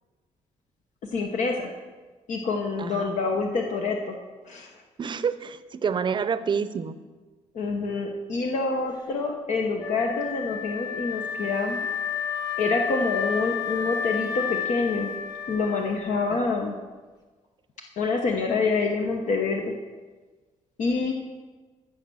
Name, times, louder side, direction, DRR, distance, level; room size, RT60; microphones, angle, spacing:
voice 1, 1.1-1.7 2.3-4.2 4.5-4.7 7.5-11.9 12.6-15.1 15.5-16.7 18.0-19.7 20.8-21.1, left 4 dB, 65° left, 2 dB, 1.1 m, -26 dB
voice 2, 2.8-3.1 5.0-6.9 16.3-16.6, right 6 dB, 35° right, 14 dB, 0.6 m, -28 dB
Wind instrument woodwind instrument, 9.8-16.8, left 6 dB, 30° left, 1.5 m, -31 dB
14.5 x 6.5 x 6.3 m, 1.3 s
cardioid pair, 120°, 14 cm